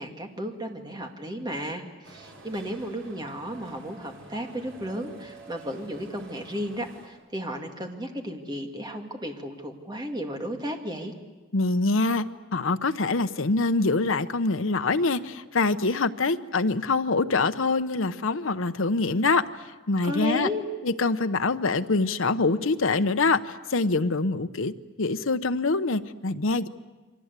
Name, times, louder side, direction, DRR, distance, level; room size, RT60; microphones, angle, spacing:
voice 1, 0.0-11.1 20.0-20.6, equal, 20° right, 3 dB, 2.3 m, -34 dB
sound 1, 2.0-7.1, right 2 dB, 60° right, 4.8 m, -48 dB
voice 2, 11.5-19.4 19.9-20.5 20.8-24.7 25.0-26.7, left 3 dB, 70° left, 9 dB, 0.9 m, -25 dB
29.0 x 23.5 x 8.2 m, 1.2 s
head